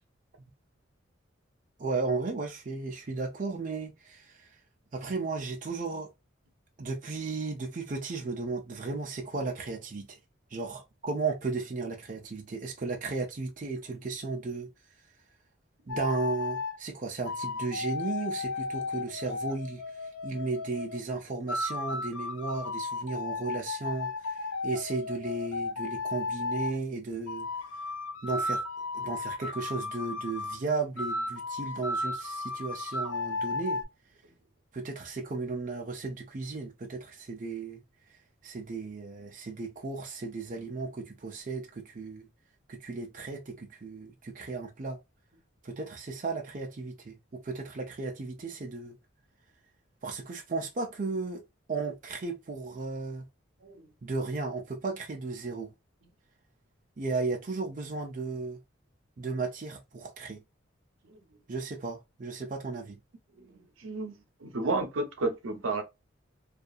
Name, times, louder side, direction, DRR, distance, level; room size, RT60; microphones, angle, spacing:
voice 1, 1.8-4.5 4.9-6.1 6.8-10.2 10.5-14.7 15.9-19.8 20.2-24.4 24.6-27.5 28.2-28.6 28.9-33.8 34.7-37.8 38.4-42.3 42.7-45.0 45.6-48.9 50.0-51.4 51.7-53.3 54.0-55.7 57.0-58.6 59.2-60.4 61.5-63.0, right 3 dB, 40° right, 0.5 m, -35 dB
sound 1, 15.9-16.8 17.3-21.0 21.5-26.8 27.3-30.6 31.0-33.8, left 3 dB, 80° left, 0.4 m, -34 dB
voice 2, 63.4-64.1 64.4-65.8, right 3 dB, 85° right, 0.7 m, -32 dB
2.7 x 2.3 x 2.3 m
head